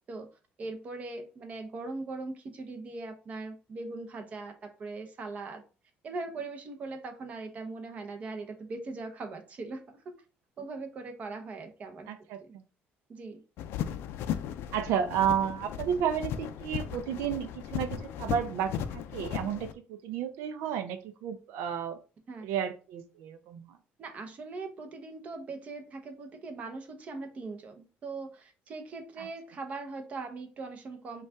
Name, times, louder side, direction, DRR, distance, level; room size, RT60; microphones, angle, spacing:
voice 1, 0.6-5.6 6.0-10.1 10.6-12.1 12.4-12.5 13.1-13.4 22.3-22.5 24.0-31.2, right 3 dB, 35° right, 5 dB, 0.8 m, -40 dB
voice 2, 12.1-12.4 14.7-17.9 18.2-22.0 22.4-23.6 29.2-29.3, right 8 dB, 90° right, 8 dB, 0.5 m, -32 dB
sound 1, 13.6-19.7, left 9 dB, 70° left, 0.4 m, -36 dB
5.4 x 2.4 x 3.4 m, 0.34 s
cardioid pair, 155°, 4 cm